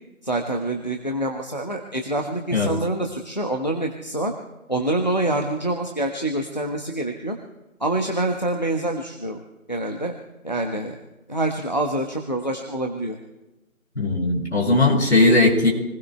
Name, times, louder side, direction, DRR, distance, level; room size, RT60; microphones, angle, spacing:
voice 1, 0.2-4.3 4.7-7.4 7.8-9.4 9.7-10.1 10.4-10.9 11.3-13.2, right 1 dB, 30° left, 3 dB, 1.1 m, -26 dB
voice 2, 14.0-15.7, left 2 dB, 50° left, -2 dB, 6.4 m, -18 dB
28.5 x 20.0 x 2.3 m, 1.0 s
figure-of-eight pair, 175°, 42 cm